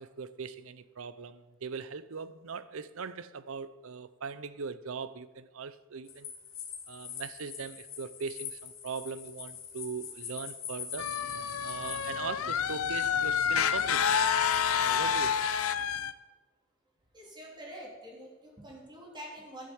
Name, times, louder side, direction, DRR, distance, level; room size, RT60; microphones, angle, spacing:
voice 1, 0.0-6.3 6.9-11.1 11.6-15.5, right 5 dB, 75° right, 0.6 m, -40 dB
sound 1, 6.1-12.1, left 8 dB, 65° left, 3.0 m, -43 dB
sound 2, 11.0-16.1, left 7 dB, 85° left, 0.6 m, -28 dB
voice 2, 17.1-19.7, equal, 20° right, 3.4 m, -46 dB
12.5 x 7.7 x 7.1 m
head